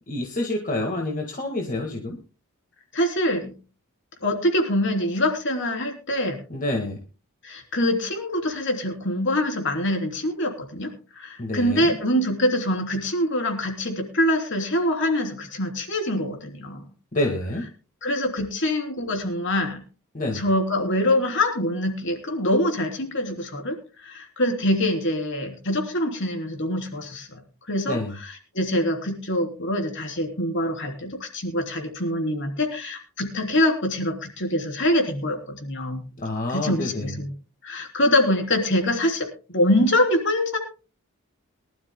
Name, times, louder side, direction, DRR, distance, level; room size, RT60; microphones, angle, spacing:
voice 1, 0.1-2.2 6.5-7.0 11.4-12.0 17.1-17.7 20.1-20.4 27.9-28.2 36.2-37.1, left 2 dB, 35° left, 1 dB, 1.7 m, -28 dB
voice 2, 2.9-3.5 4.2-6.4 7.4-16.9 18.0-19.8 20.3-27.4 27.7-36.0 36.5-37.3 37.6-40.6, left 1 dB, 55° left, 3 dB, 3.3 m, -24 dB
23.0 x 12.5 x 2.2 m, 0.35 s
head